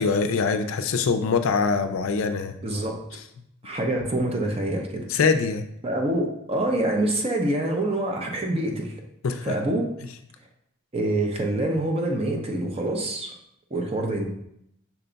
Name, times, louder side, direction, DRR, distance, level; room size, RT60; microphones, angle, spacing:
voice 1, 0.0-2.5 5.1-5.6 9.2-9.6, left 5 dB, 70° left, 8 dB, 0.4 m, -23 dB
voice 2, 2.6-3.0 3.6-5.1 5.8-9.0 9.4-9.9 10.9-13.3 13.7-14.3, right 1 dB, 30° right, 1 dB, 0.6 m, -26 dB
5.8 x 2.3 x 3.9 m, 0.76 s
head